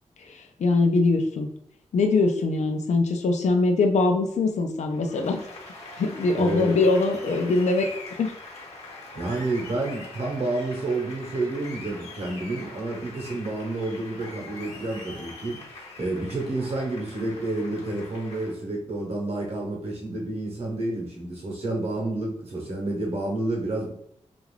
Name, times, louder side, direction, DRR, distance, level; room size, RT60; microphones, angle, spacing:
voice 1, 0.2-1.5 1.9-5.4 6.0-7.9 8.2-8.3, left 3 dB, 85° left, 6 dB, 0.5 m, -22 dB
Applause, 4.9-18.5, left 3 dB, 65° left, 1.0 m, -43 dB
voice 2, 6.4-6.8 9.1-23.9, right 2 dB, 60° right, -1 dB, 0.8 m, -29 dB
2.4 x 2.3 x 3.2 m, 0.69 s
wide cardioid pair, 170°, 12 cm